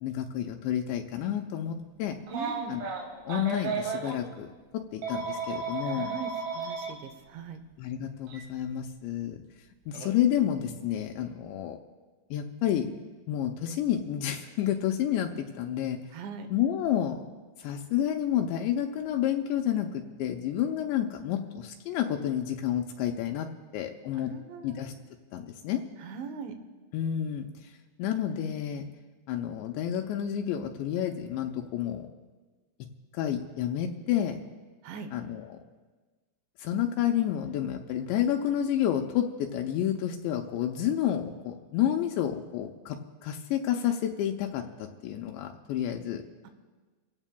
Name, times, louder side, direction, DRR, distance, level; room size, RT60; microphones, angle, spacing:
voice 1, 0.0-2.2 2.7-4.5 4.9-6.1 7.8-9.4 9.9-11.8 12.3-12.9 13.3-16.0 16.5-17.2 17.6-23.5 23.7-24.3 24.6-24.9 25.3-25.8 26.9-27.5 28.0-28.9 29.3-32.1 33.1-34.4 35.1-35.4 36.6-43.0 43.2-46.2, left 10 dB, 85° left, 3 dB, 2.9 m, -30 dB
Telephone, 2.3-4.2 5.0-6.9 8.3-8.4 9.9-10.1, right 4 dB, 65° right, 4.1 m, -34 dB
voice 2, 2.3-2.8 5.8-7.6 16.1-16.5 24.1-24.8 26.0-26.5 34.8-35.1, right 6 dB, 80° right, 8 dB, 3.3 m, -40 dB
26.0 x 16.0 x 2.2 m, 1.3 s
omnidirectional pair, 5.2 m